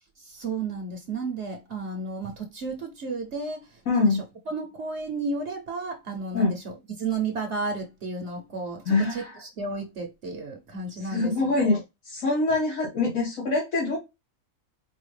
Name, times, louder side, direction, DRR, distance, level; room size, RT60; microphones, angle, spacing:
voice 1, 0.2-4.2 4.5-11.8, right 3 dB, 60° right, 1.1 m, -33 dB
voice 2, 3.9-4.2 6.3-6.6 8.9-9.4 11.0-11.8 12.0-14.0, left 3 dB, 75° left, 1.7 m, -24 dB
4.8 x 2.4 x 3.2 m
omnidirectional pair, 1.4 m